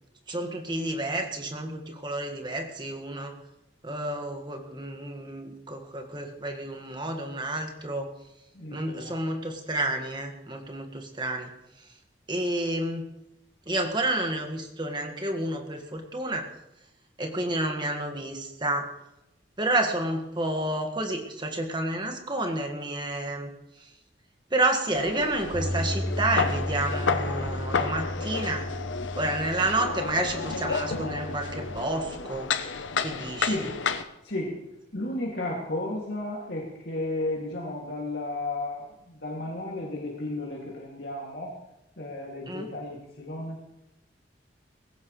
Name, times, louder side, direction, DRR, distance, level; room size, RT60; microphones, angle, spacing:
voice 1, 0.3-3.4 3.8-8.1 8.7-11.5 11.8-11.9 12.3-13.1 13.7-16.5 17.2-18.9 19.6-23.5 23.8-23.9 24.5-28.7 29.2-32.5 33.0-33.7 42.5-42.7, right 1 dB, 25° right, 3 dB, 1.7 m, -30 dB
voice 2, 8.5-9.1 33.4-33.7 34.2-34.5 34.9-41.5 42.0-43.6, left 2 dB, 60° left, -3 dB, 2.5 m, -33 dB
sound 1, 24.9-34.0, left 5 dB, 85° left, 0.9 m, -31 dB
Bass guitar, 25.5-31.8, equal, 5° right, 3.7 m, -34 dB
19.5 x 16.5 x 3.2 m, 0.91 s
head